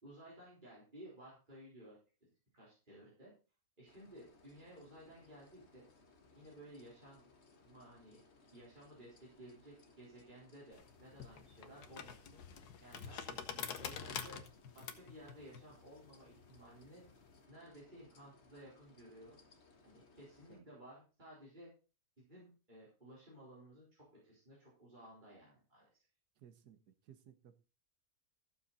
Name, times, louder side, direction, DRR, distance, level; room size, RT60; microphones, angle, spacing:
voice 1, 0.0-2.0 2.5-3.3 3.8-5.9 6.3-7.3 7.6-8.2 8.5-13.3 13.8-14.4 14.7-17.0 17.5-19.4 19.8-21.7 22.3-25.9, right 1 dB, 30° right, -7 dB, 4.3 m, -56 dB
sound 1, 3.9-20.6, left 3 dB, 45° left, 1.6 m, -65 dB
sound 2, 10.7-17.4, left 7 dB, 85° left, 1.6 m, -47 dB
voice 2, 13.3-13.7 20.5-20.7 26.4-26.8 27.0-27.6, right 9 dB, 85° right, 10 dB, 1.7 m, -60 dB
14.5 x 7.2 x 4.1 m, 0.35 s
omnidirectional pair, 1.7 m